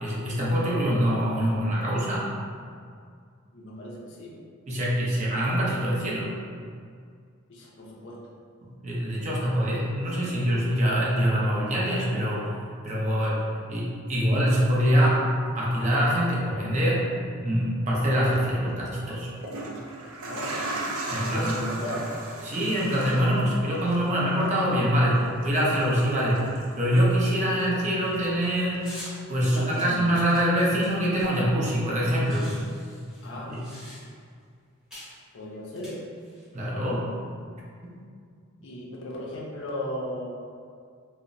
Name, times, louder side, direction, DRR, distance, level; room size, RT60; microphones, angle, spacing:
voice 1, 0.0-2.3 4.7-6.3 8.8-12.5 12.8-13.4 13.7-15.2 15.5-17.1 17.4-19.3 21.1-21.6 22.4-26.5 26.8-28.9 29.3-32.5 33.5-33.6 36.5-37.1 37.8-37.9, equal, 35° right, -6 dB, 0.5 m, -24 dB
voice 2, 3.5-4.4 7.5-8.2 20.2-20.7 21.1-22.1 29.5-30.0 33.2-33.5 35.3-36.0 38.6-40.3, left 1 dB, 60° left, -3 dB, 0.5 m, -36 dB
sound 1, 18.2-18.4 19.2-27.3 27.6-28.6 29.1-29.2, right 2 dB, 85° right, 0.4 m, -37 dB
sound 2, 28.8-29.2 29.8-31.6 31.8-31.9 32.1-34.3 34.9-35.2 35.7-36.5, equal, 5° right, 0.8 m, -45 dB
2.8 x 2.0 x 2.5 m, 2.2 s
head